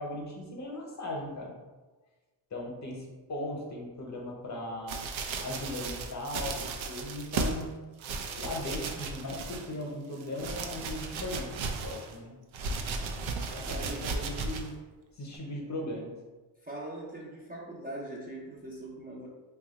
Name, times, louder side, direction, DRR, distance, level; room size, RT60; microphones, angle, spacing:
voice 1, 0.0-1.6 2.5-5.0 5.4-7.7 8.4-12.4 13.5-14.7 15.2-16.1, left 1 dB, 35° left, -1 dB, 0.8 m, -38 dB
sound 1, 4.9-7.6 8.0-9.8 10.1-12.1 12.5-14.7 15.3-15.4, right 4 dB, 75° right, 0.6 m, -35 dB
voice 2, 12.9-13.3 13.6-14.1 16.6-19.3, right 1 dB, 20° right, -5 dB, 0.5 m, -42 dB
2.8 x 2.4 x 4.0 m, 1.2 s
cardioid pair, 100°, 48 cm